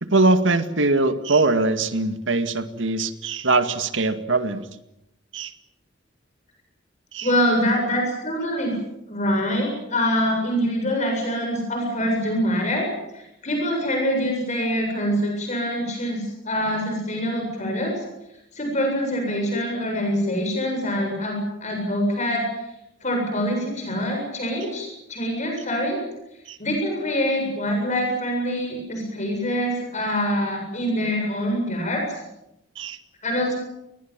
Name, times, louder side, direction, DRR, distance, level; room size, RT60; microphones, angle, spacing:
voice 1, 0.1-4.7 5.3-5.5 7.1-7.3 26.5-26.6 32.8-33.0, right 2 dB, 80° right, 9 dB, 2.1 m, -22 dB
voice 2, 7.2-8.8 9.1-12.9 13.1-18.0 18.5-22.4 23.0-26.0 26.6-32.2 33.2-33.6, equal, 40° left, 2 dB, 7.7 m, -25 dB
29.5 x 21.5 x 7.5 m, 0.86 s
head